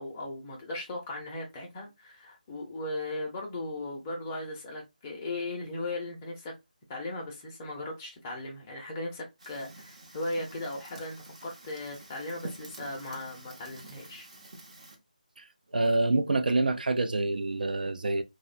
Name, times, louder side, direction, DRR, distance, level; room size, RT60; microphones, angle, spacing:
voice 1, 0.0-6.5 6.9-14.3, left 2 dB, 15° left, 0.5 m, -37 dB
Fire, 9.4-14.9, right 2 dB, 50° right, 0.8 m, -48 dB
voice 2, 15.7-18.2, right 2 dB, 80° right, 0.4 m, -26 dB
2.6 x 2.1 x 2.4 m
figure-of-eight pair, 165°, 5 cm